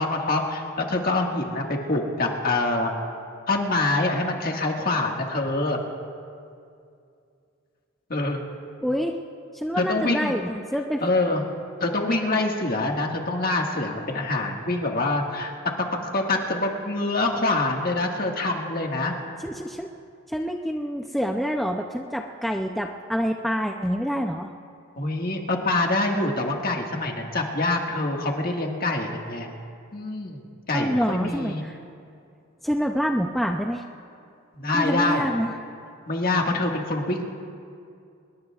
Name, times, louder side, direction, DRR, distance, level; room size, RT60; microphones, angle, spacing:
voice 1, 0.0-2.9 3.5-5.8 8.1-8.4 9.8-10.3 11.0-11.4 11.8-15.5 15.8-19.1 25.0-29.5 29.9-30.4 30.7-31.6 34.5-35.3 36.1-37.2, left 2 dB, 45° left, 1 dB, 1.7 m, -25 dB
voice 2, 8.8-9.2 9.5-11.0 19.4-19.9 20.3-24.5 30.7-31.8 32.6-33.8 34.7-35.5, equal, ahead, 1 dB, 0.5 m, -27 dB
26.5 x 22.0 x 2.4 m, 2.4 s
head